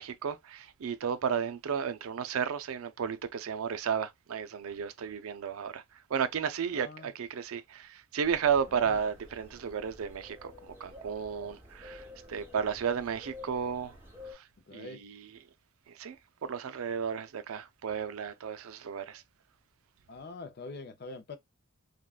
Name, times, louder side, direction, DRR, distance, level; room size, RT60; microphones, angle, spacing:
voice 1, 0.0-5.8 6.1-14.0 14.3-14.5 14.7-15.3 15.9-16.2 16.4-19.2, right 7 dB, 75° right, 0.4 m, -33 dB
voice 2, 6.7-7.1 8.8-9.0 14.7-15.0 20.1-21.4, left 3 dB, 45° left, 0.5 m, -44 dB
sound 1, 8.2-14.3, left 1 dB, 10° right, 0.8 m, -50 dB
3.5 x 2.2 x 2.3 m
head